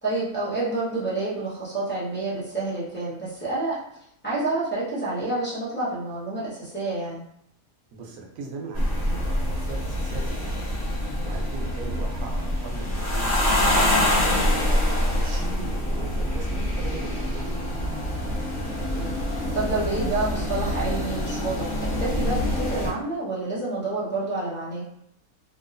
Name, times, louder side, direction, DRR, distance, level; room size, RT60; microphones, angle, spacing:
voice 1, 0.0-3.8 4.2-7.2 18.8-24.8, right 2 dB, 10° left, -9 dB, 0.7 m, -29 dB
voice 2, 7.9-10.7 11.2-13.6 14.2-17.8, right 3 dB, 90° right, 0 dB, 1.1 m, -39 dB
sound 1, 8.7-22.9, left 1 dB, 45° left, 0.9 m, -25 dB
2.9 x 2.2 x 2.5 m, 0.72 s
omnidirectional pair, 1.5 m